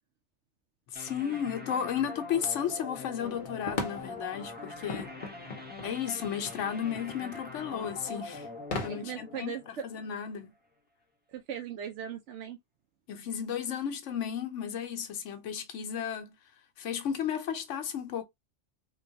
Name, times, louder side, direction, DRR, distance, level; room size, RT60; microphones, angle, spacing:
voice 1, 0.9-5.1 5.8-8.5 8.8-10.5 13.1-16.3 16.8-18.2, left 8 dB, 85° left, 1.1 m, -34 dB
sound 1, 1.0-10.3, left 2 dB, 10° right, 0.6 m, -43 dB
sound 2, 3.2-8.9, left 3 dB, 45° left, 0.9 m, -40 dB
voice 2, 8.9-9.8 11.3-12.6, right 9 dB, 80° right, 0.9 m, -39 dB
3.7 x 2.3 x 2.7 m
omnidirectional pair, 1.2 m